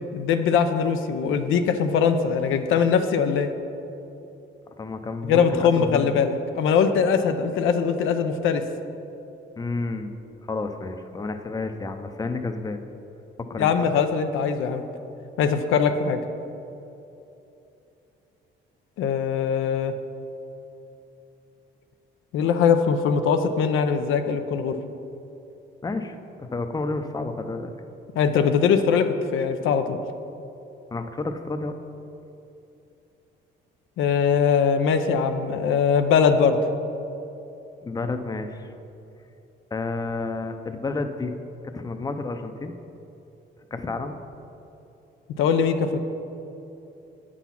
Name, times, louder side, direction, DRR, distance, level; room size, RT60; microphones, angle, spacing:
voice 1, 0.1-3.5 5.3-8.6 13.6-14.8 15.4-16.2 19.0-19.9 22.3-24.8 28.2-30.0 34.0-36.6 45.4-46.0, left 6 dB, 85° left, 8 dB, 0.6 m, -21 dB
voice 2, 4.8-6.1 9.6-10.1 10.5-12.8 13.5-13.7 25.8-27.7 30.9-31.7 37.8-38.7 39.7-41.3 41.7-42.7 43.7-44.2, left 3 dB, 20° left, 7 dB, 0.6 m, -30 dB
8.1 x 6.1 x 5.8 m, 2.9 s
cardioid pair, 90°, 20 cm